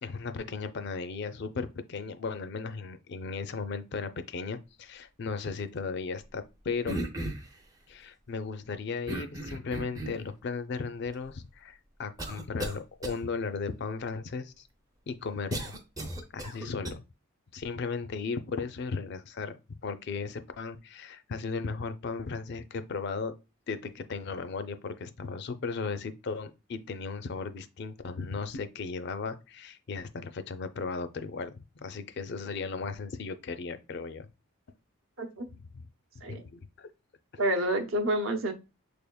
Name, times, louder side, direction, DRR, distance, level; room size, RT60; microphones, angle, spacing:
voice 1, 0.0-7.0 7.9-14.6 15.1-15.7 16.3-17.0 17.5-23.3 23.7-34.3 35.7-35.8 36.3-36.9, left 4 dB, 50° left, 0.4 m, -36 dB
sound 1, 6.9-7.6 9.1-10.3 11.1-11.2 12.2-12.8 13.0-13.2 15.5-16.9, right 1 dB, 15° right, 0.5 m, -35 dB
voice 2, 37.4-38.5, right 1 dB, 65° right, 0.8 m, -28 dB
6.3 x 3.4 x 2.2 m
head